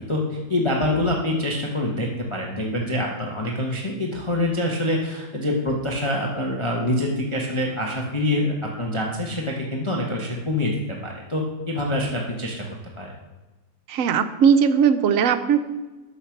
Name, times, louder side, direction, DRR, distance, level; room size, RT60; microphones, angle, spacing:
voice 1, 0.0-12.6 13.0-13.1, left 1 dB, 20° left, -1 dB, 1.0 m, -25 dB
voice 2, 13.9-15.6, right 7 dB, 65° right, 10 dB, 0.8 m, -18 dB
9.7 x 6.8 x 5.8 m, 1.1 s
omnidirectional pair, 2.1 m